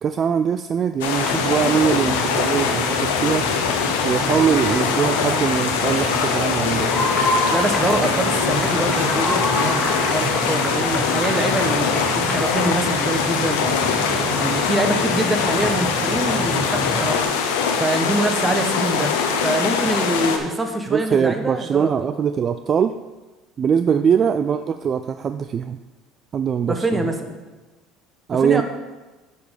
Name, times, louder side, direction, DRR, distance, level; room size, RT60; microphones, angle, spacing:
voice 1, 0.0-3.5 4.0-6.9 20.9-22.9 23.6-25.8 26.3-27.1 28.3-28.6, right 7 dB, 40° right, 10 dB, 0.3 m, -22 dB
sound 1, 1.0-20.4, left 6 dB, 85° left, 0.9 m, -22 dB
sound 2, 1.1-17.2, equal, 10° left, 2.5 m, -28 dB
voice 2, 7.5-19.1 19.4-22.1 23.9-24.0 26.7-27.3 28.4-28.6, right 1 dB, 15° right, 5 dB, 1.1 m, -25 dB
7.8 x 5.2 x 5.2 m, 1.2 s
supercardioid pair, 90°, 0 cm